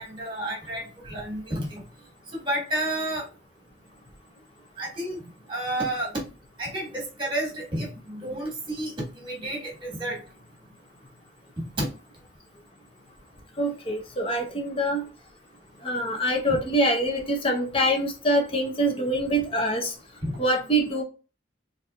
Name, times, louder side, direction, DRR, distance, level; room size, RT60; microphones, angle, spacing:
voice 1, 0.0-1.8 2.4-3.3 4.8-5.2 5.5-6.1 6.6-10.2 11.6-11.9 16.5-16.6 20.2-20.4, right 1 dB, 25° right, -1 dB, 1.5 m, -31 dB
voice 2, 13.6-15.1 15.8-19.9 20.4-21.0, right 1 dB, 30° left, 3 dB, 0.7 m, -25 dB
4.1 x 2.7 x 2.3 m, 0.34 s
head